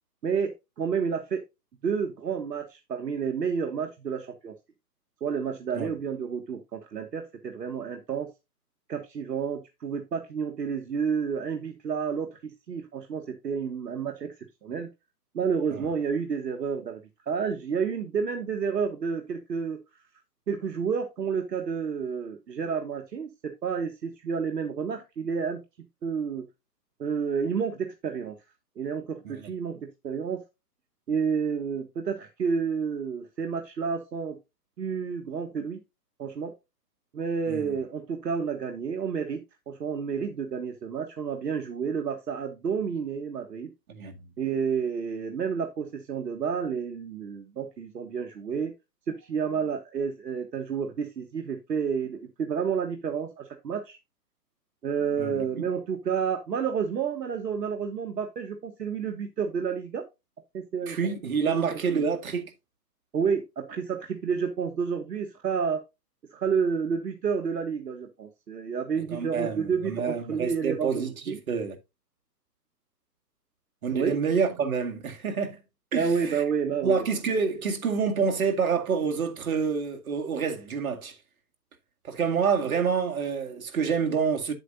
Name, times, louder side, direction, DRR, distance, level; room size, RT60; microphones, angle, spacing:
voice 1, 0.2-1.4 1.8-4.5 5.2-8.3 8.9-14.4 14.6-14.9 15.3-17.0 17.3-19.8 20.5-25.6 26.0-26.5 27.0-28.3 28.8-30.4 31.1-34.4 34.8-35.8 36.2-36.5 37.1-43.7 44.4-48.7 49.1-54.0 54.8-60.0 60.5-61.0 61.6-62.0 63.1-65.8 66.3-70.9 71.3-71.4 73.9-74.2 75.9-77.0, right 6 dB, 70° right, 1.4 m, -30 dB
voice 2, 55.2-55.6 60.9-62.4 69.1-71.8 73.8-75.6 75.9-76.4 76.8-81.2 82.0-84.5, right 6 dB, 55° right, 2.1 m, -28 dB
8.9 x 7.8 x 2.6 m
hypercardioid pair, 145°, 50 cm